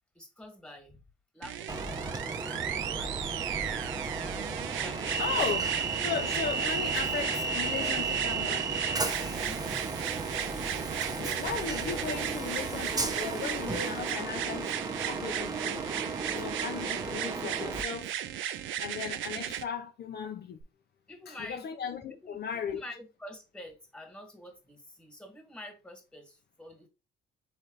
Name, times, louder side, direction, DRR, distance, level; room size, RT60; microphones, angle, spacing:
voice 1, 0.1-1.0 1.3-2.3 2.8-3.4 4.0-4.1 4.8-5.2 9.4-9.7 16.0-16.5 21.1-21.7 22.2-26.9, left 1 dB, 5° left, 1.6 m, -48 dB
sound 1, 1.4-19.6 20.6-20.7, right 11 dB, 75° right, 0.5 m, -36 dB
Train, 1.7-17.8, right 4 dB, 20° right, 0.7 m, -34 dB
voice 2, 5.2-5.7 6.0-8.8 10.9-15.8 16.3-18.1 18.8-20.6 21.3-22.8, left 6 dB, 55° left, 0.6 m, -37 dB
4.0 x 3.3 x 3.8 m
cardioid pair, 90°, 20 cm